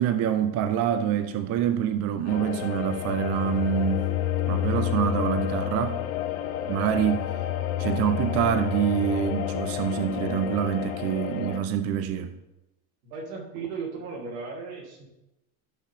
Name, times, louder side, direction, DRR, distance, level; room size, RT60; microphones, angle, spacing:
voice 1, 0.0-4.1 4.5-6.0 6.7-7.3 7.8-12.3, right 9 dB, 35° right, 10 dB, 0.5 m, -26 dB
sound 1, 2.3-11.6, left 11 dB, 80° left, 0.9 m, -29 dB
voice 2, 13.0-15.1, right 5 dB, 85° right, -1 dB, 2.8 m, -36 dB
13.5 x 5.9 x 3.3 m, 0.96 s
cardioid pair, 155°, 43 cm